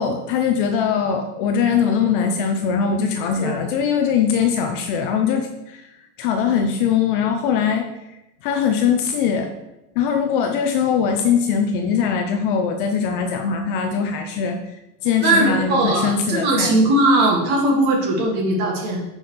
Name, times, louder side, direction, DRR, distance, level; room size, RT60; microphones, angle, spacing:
voice 1, 0.0-9.5 10.0-14.7 15.0-16.9, left 7 dB, 35° left, 5 dB, 0.6 m, -21 dB
voice 2, 15.2-19.0, right 2 dB, 40° right, -1 dB, 2.3 m, -19 dB
9.7 x 6.1 x 3.3 m, 0.91 s
supercardioid pair, 155°, 47 cm